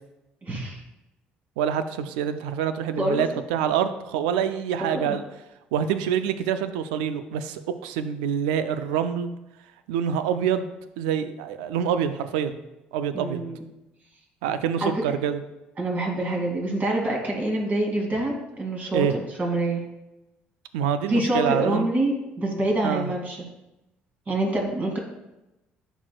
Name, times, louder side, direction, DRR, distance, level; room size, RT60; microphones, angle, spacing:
voice 1, 0.4-0.8 3.0-3.3 4.8-5.2 13.1-13.6 14.8-15.2 15.8-19.8 21.1-23.4 24.3-25.0, right 1 dB, 40° right, 0 dB, 2.4 m, -26 dB
voice 2, 1.6-5.2 5.7-9.3 9.9-10.7 11.0-12.6 12.9-13.4 14.4-15.4 18.9-19.1 20.7-21.9 22.8-23.1, right 8 dB, 80° right, 11 dB, 0.4 m, -26 dB
11.0 x 4.5 x 2.3 m, 0.95 s
hypercardioid pair, 60°, 5 cm